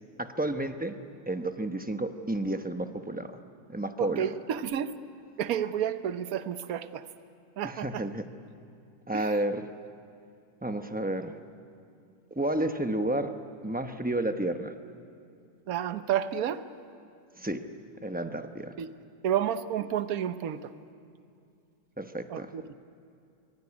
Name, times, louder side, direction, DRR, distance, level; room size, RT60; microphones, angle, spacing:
voice 1, 0.2-1.0 1.3-3.4 3.7-4.3 7.6-8.2 9.1-9.7 10.6-11.4 12.3-13.3 13.6-14.7 17.4-17.7 18.0-18.7 22.0-22.5, right 1 dB, 10° right, 6 dB, 0.5 m, -31 dB
voice 2, 4.0-4.9 5.4-7.1 7.6-8.0 9.1-9.3 15.7-16.6 18.8-18.9 19.2-20.7 22.3-22.6, right 9 dB, 60° right, 11 dB, 1.2 m, -30 dB
24.0 x 22.5 x 9.8 m, 2.5 s
omnidirectional pair, 2.0 m